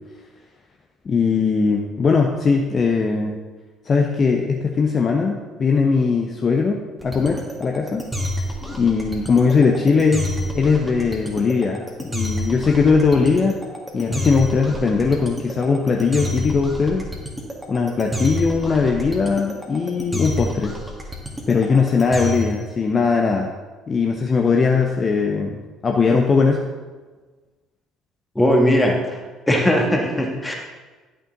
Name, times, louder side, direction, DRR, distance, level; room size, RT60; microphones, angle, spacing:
voice 1, 1.0-3.4 3.8-8.0 8.6-10.3 10.5-13.6 13.9-17.1 17.7-20.7 21.5-23.5 23.9-26.6, left 5 dB, 35° left, 2 dB, 0.7 m, -19 dB
sound 1, 7.0-22.6, equal, 5° right, 1.8 m, -28 dB
voice 2, 28.4-29.2 29.5-30.5, equal, 10° left, 0 dB, 1.7 m, -18 dB
11.0 x 6.2 x 3.9 m, 1.3 s
figure-of-eight pair, 55°, 0 cm